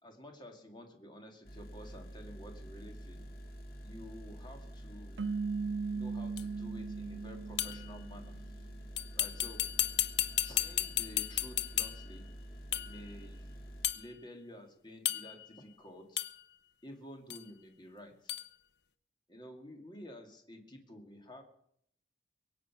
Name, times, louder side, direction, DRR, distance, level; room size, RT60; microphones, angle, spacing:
voice 1, 0.0-3.3 3.8-5.2 5.9-8.7 9.1-9.7 10.4-12.3 12.8-13.5 13.9-16.2 16.8-18.3 19.3-21.4, left 1 dB, 25° left, 3 dB, 2.3 m, -51 dB
sound 1, 1.4-13.9, equal, 50° left, 2.7 m, -48 dB
sound 2, 5.2-8.5, right 4 dB, 90° right, 0.5 m, -38 dB
sound 3, 6.4-6.5 7.6-7.9 9.0-12.1 12.7-13.0 13.8-14.1 15.0-15.5 16.2-16.4 17.3-17.4 18.3-18.5, left 12 dB, 70° left, 0.8 m, -34 dB
22.5 x 8.2 x 6.0 m, 0.70 s
head